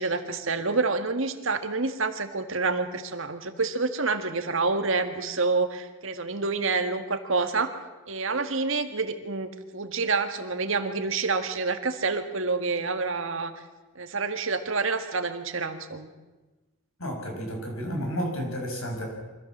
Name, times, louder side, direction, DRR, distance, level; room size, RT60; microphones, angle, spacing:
voice 1, 0.0-7.7 8.1-13.5 14.0-16.1, right 4 dB, 65° right, 7 dB, 1.8 m, -28 dB
voice 2, 17.0-19.1, equal, 80° left, 1 dB, 6.4 m, -31 dB
25.0 x 15.0 x 7.4 m, 1.2 s
head